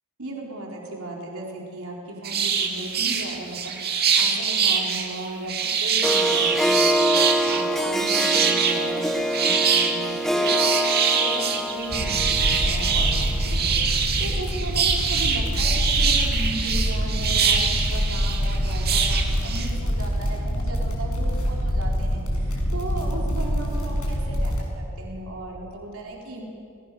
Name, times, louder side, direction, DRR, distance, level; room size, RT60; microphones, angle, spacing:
voice 1, 0.2-26.4, right 2 dB, 70° right, -1 dB, 4.6 m, -36 dB
sound 1, 2.2-19.7, right 6 dB, 45° right, 2.7 m, -24 dB
Harp, 6.0-13.5, equal, ahead, 1.3 m, -25 dB
sound 2, 11.9-24.6, equal, 80° left, 6.5 m, -25 dB
29.5 x 21.0 x 7.1 m, 2.5 s
head